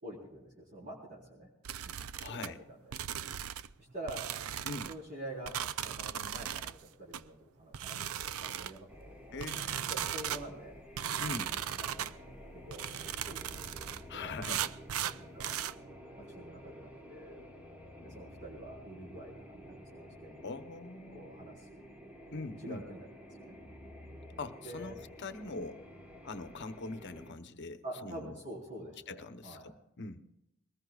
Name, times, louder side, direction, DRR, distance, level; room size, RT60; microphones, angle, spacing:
voice 1, 0.0-1.5 1.8-2.8 3.8-4.2 4.9-8.9 9.9-10.8 11.3-14.4 15.2-15.5 16.2-17.5 18.0-20.4 21.1-21.8 22.6-23.1 23.4-23.6 24.6-24.9 27.8-29.7, right 1 dB, 35° right, -5 dB, 4.2 m, -47 dB
sound 1, 1.6-2.5 2.9-3.7 4.1-4.9 5.5-6.7 7.1-7.2 7.7-8.8 9.4-10.4 11.0-12.1 12.7-14.0 14.4-15.7, right 10 dB, 85° right, 0.5 m, -37 dB
voice 2, 2.2-2.6 4.6-4.9 9.3-10.1 11.2-11.6 14.1-14.7 20.4-21.3 22.3-22.8 24.4-25.8 26.2-28.3 29.1-30.3, left 3 dB, 55° left, 9 dB, 0.9 m, -42 dB
sound 2, 8.9-27.3, equal, 10° right, 1.4 m, -51 dB
22.0 x 19.5 x 2.4 m, 0.84 s
head